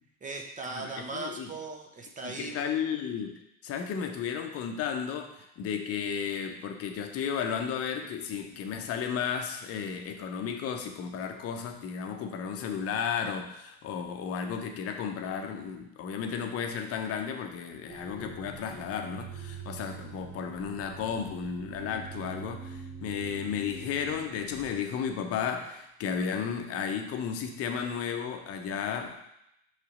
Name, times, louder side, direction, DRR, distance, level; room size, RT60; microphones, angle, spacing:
voice 1, 0.2-2.8, right 3 dB, 20° right, 1 dB, 0.7 m, -38 dB
voice 2, 0.7-1.5 2.2-29.2, left 7 dB, 35° left, 5 dB, 0.8 m, -33 dB
sound 1, 17.9-24.8, right 6 dB, 50° right, 2.2 m, -44 dB
5.6 x 3.3 x 5.1 m, 0.82 s
hypercardioid pair, 80°, 43 cm